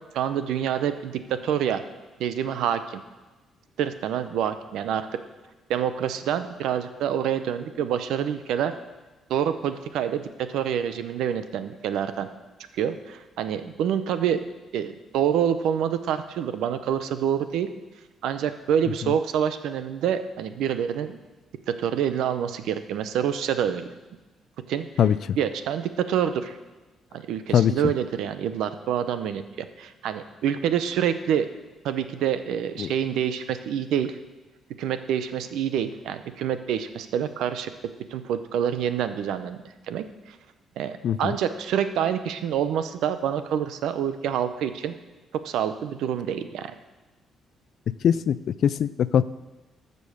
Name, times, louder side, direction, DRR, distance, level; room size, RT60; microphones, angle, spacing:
voice 1, 0.1-1.8 2.2-3.0 3.8-5.1 5.7-8.7 9.3-12.3 12.7-14.4 14.7-17.7 18.2-21.2 21.7-23.9 24.7-25.0 25.4-26.6 27.1-31.5 31.8-34.2 34.8-37.7 38.1-39.6 39.9-40.0 40.8-44.9 45.3-46.7, right 9 dB, 85° right, 10 dB, 0.7 m, -27 dB
voice 2, 48.0-48.4 48.6-49.2, left 9 dB, 65° left, 17 dB, 0.4 m, -20 dB
13.5 x 5.4 x 6.4 m, 1.2 s
cardioid pair, 100°, 0 cm